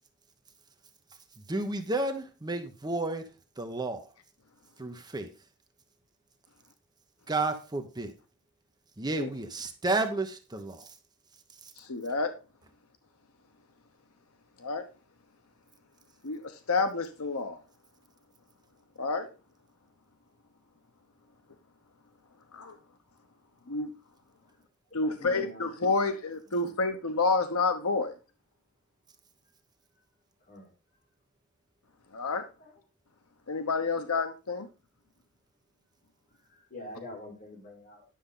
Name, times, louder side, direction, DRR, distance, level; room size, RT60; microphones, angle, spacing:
voice 1, 1.4-3.3 3.6-4.1 4.8-5.3 7.3-8.1 9.0-11.0 11.5-11.7, right 2 dB, 20° right, 1.0 m, -32 dB
voice 2, 11.8-12.3 14.6-14.8 16.2-16.4 16.7-17.6 19.0-19.3 22.5-22.8 23.7-23.9 24.9-28.1 32.1-32.4 33.5-34.7, left 3 dB, 80° left, 0.9 m, -29 dB
voice 3, 25.0-25.7 26.0-26.2 26.5-26.6 30.5-30.7 32.6-32.7 36.6-38.1, left 1 dB, 45° left, 3.9 m, -45 dB
10.0 x 6.8 x 3.8 m
head